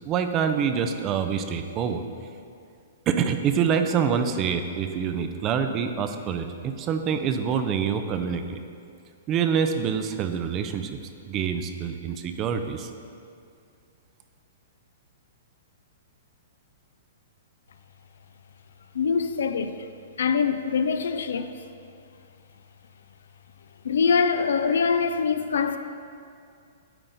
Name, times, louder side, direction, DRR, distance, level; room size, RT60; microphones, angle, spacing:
voice 1, 0.1-2.0 3.1-8.6 9.3-11.0 11.3-12.9, right 7 dB, 30° right, 0.4 m, -26 dB
voice 2, 18.9-19.8 20.2-21.6 23.8-25.8, left 5 dB, 80° left, 0.4 m, -24 dB
9.0 x 3.7 x 4.0 m
hypercardioid pair, 140°, 0 cm